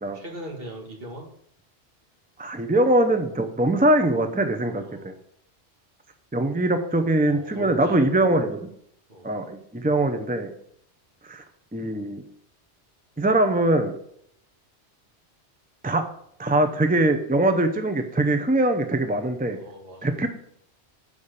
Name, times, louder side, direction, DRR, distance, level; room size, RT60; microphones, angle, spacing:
voice 1, 0.1-1.3 4.8-5.1 7.2-8.3 9.1-9.3 19.5-20.1, right 1 dB, 55° right, 0 dB, 2.1 m, -39 dB
voice 2, 2.4-5.1 6.3-8.7 9.2-10.5 11.2-11.4 11.7-12.2 13.2-14.0 15.8-16.1 16.4-19.6 20.0-20.3, right 1 dB, 10° right, 7 dB, 0.5 m, -22 dB
7.2 x 5.0 x 6.6 m, 0.70 s
omnidirectional pair, 1.2 m